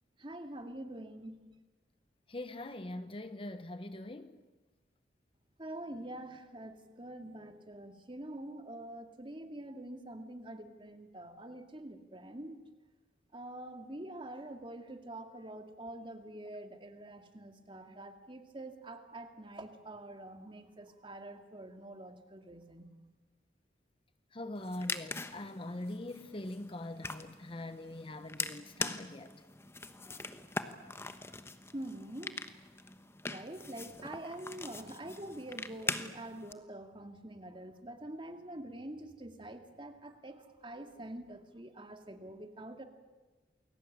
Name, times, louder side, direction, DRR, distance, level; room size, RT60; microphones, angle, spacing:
voice 1, 0.2-1.4 5.6-12.6 13.3-22.9 31.7-32.4 33.2-42.8, right 1 dB, 25° right, 2.2 m, -46 dB
voice 2, 2.3-4.4 24.3-29.3, left 1 dB, 30° left, 1.1 m, -42 dB
sound 1, 24.5-36.5, left 3 dB, 15° left, 1.1 m, -42 dB
29.0 x 22.0 x 8.7 m
head